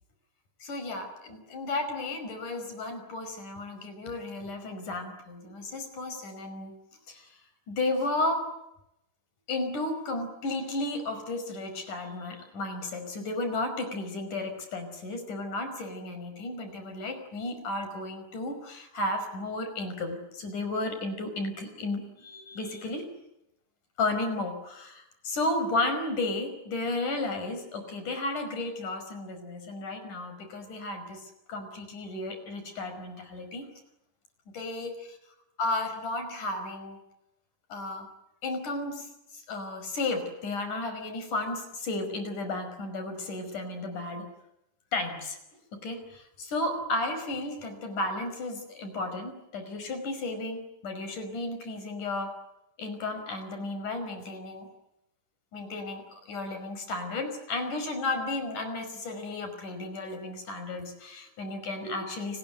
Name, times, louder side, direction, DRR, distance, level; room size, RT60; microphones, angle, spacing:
voice 1, 0.6-6.8 7.1-7.3 7.7-8.5 9.5-23.0 24.0-33.7 34.6-34.9 35.6-37.0 37.7-38.1 38.4-44.3 44.9-45.4 45.8-52.3 52.8-54.7 55.5-62.4, left 2 dB, 85° left, 7 dB, 6.9 m, -33 dB
29.5 x 20.5 x 9.4 m, 0.85 s
omnidirectional pair, 3.5 m